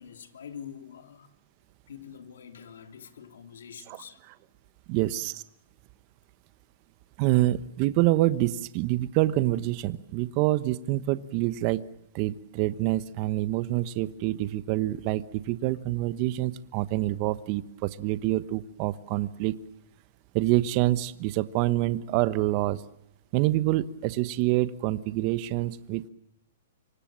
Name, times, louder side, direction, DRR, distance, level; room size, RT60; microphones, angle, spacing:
voice 1, 0.0-1.3 1.9-4.2, left 8 dB, 80° left, 3.0 m, -45 dB
voice 2, 4.9-5.4 7.2-11.9 12.1-19.6 20.3-22.8 23.3-26.1, right 16 dB, 40° right, 1.1 m, -26 dB
27.5 x 25.0 x 7.6 m
hypercardioid pair, 130°, 0 cm